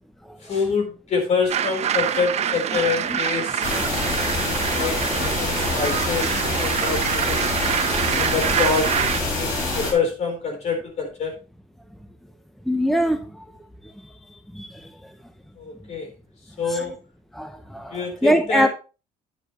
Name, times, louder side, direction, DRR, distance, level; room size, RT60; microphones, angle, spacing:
voice 1, 0.4-3.9 4.3-7.6 8.1-8.9 9.2-11.3 15.6-16.1 16.6-16.9 17.9-18.7, left 5 dB, 50° left, 4.3 m, -26 dB
sound 1, 1.5-9.2, right 9 dB, 50° right, 0.8 m, -25 dB
sound 2, 3.6-9.9, left 2 dB, 75° left, 6.2 m, -25 dB
voice 2, 12.7-13.2 16.7-16.8 17.4-17.5 17.7-17.8 18.2-18.7, equal, ahead, 0.8 m, -19 dB
9.4 x 9.3 x 3.2 m
cardioid pair, 105°, 14 cm